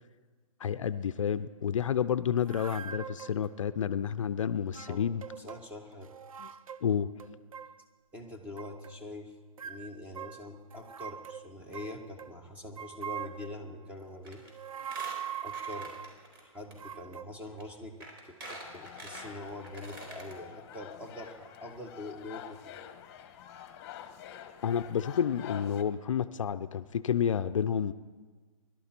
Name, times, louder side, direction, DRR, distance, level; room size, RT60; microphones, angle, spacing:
voice 1, 0.6-5.2 6.4-6.5 6.8-7.1 24.6-27.9, left 8 dB, 60° left, 12 dB, 0.6 m, -30 dB
sound 1, 2.4-3.5 4.7-5.6 5.9-6.9 7.2-7.8 8.6-9.0 9.6-12.3 12.8-13.6 14.4-16.2 16.8-17.3, right 8 dB, 70° right, 0.6 m, -42 dB
voice 2, 5.3-6.2 8.1-9.3 9.6-14.4 14.9-15.0 15.4-16.2 16.4-22.8, left 1 dB, 5° right, 3 dB, 1.4 m, -44 dB
Squeak, 14.2-14.5 14.8-16.4 16.7-16.8 17.6-17.7 18.0-20.3 20.7-20.8 21.0-21.1, right 1 dB, 40° right, 4.3 m, -45 dB
sound 2, 18.6-25.8, left 10 dB, 30° left, 1.1 m, -47 dB
24.0 x 12.0 x 4.4 m, 1.5 s
hypercardioid pair, 145°, 18 cm